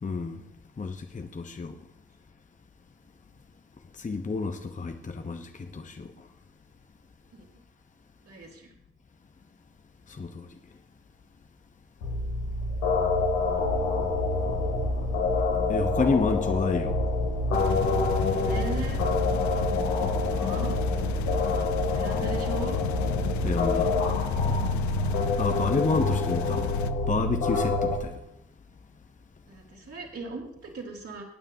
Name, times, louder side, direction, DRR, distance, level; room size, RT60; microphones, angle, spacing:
voice 1, 0.0-0.4 0.8-1.8 3.9-6.3 10.1-10.5 15.7-17.0 23.4-24.0 25.4-28.2, left 4 dB, 25° left, 0.9 m, -29 dB
voice 2, 8.2-8.7 16.5-16.6 18.3-19.0 20.3-20.7 21.9-22.8 29.5-31.2, right 3 dB, 45° right, 3.1 m, -38 dB
sound 1, 12.0-28.0, left 2 dB, 80° left, 2.5 m, -27 dB
sound 2, 17.5-26.9, left 13 dB, 60° left, 0.6 m, -34 dB
23.5 x 9.0 x 2.8 m
hypercardioid pair, 45°, 33 cm